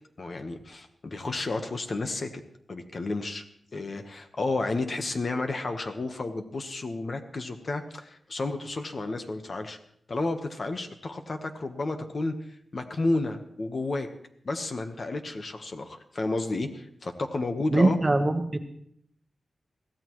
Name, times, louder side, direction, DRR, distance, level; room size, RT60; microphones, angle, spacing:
voice 1, 0.2-2.3 2.7-3.4 3.7-9.8 10.1-12.3 12.7-14.1 14.4-18.0, left 2 dB, 45° left, 6 dB, 1.2 m, -31 dB
voice 2, 17.7-18.6, right 2 dB, 25° right, 6 dB, 1.2 m, -22 dB
22.0 x 15.5 x 3.1 m, 0.71 s
wide cardioid pair, 125°, 0 cm